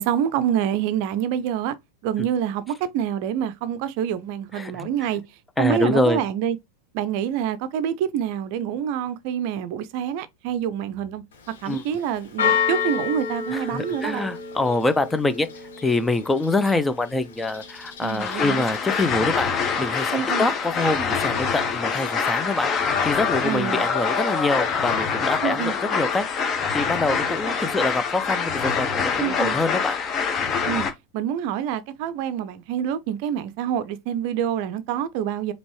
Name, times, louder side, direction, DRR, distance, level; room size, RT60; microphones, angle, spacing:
voice 1, 0.0-1.8 2.0-5.2 5.6-6.6 6.9-11.2 11.6-14.3 18.0-18.6 20.1-20.5 23.4-23.9 25.4-25.7 29.2-29.6 30.6-30.9 31.1-35.5, right 9 dB, 45° right, 0.6 m, -26 dB
voice 2, 4.5-4.9 5.6-6.2 11.7-11.8 13.5-15.5 15.8-19.5 19.8-22.7 23.0-29.9, left 2 dB, 10° left, 0.6 m, -25 dB
Church bell, 11.3-25.1, left 7 dB, 60° left, 1.3 m, -33 dB
sound 1, 18.2-30.9, left 6 dB, 30° left, 1.1 m, -25 dB
5.2 x 3.0 x 3.1 m
figure-of-eight pair, 90°, 0 cm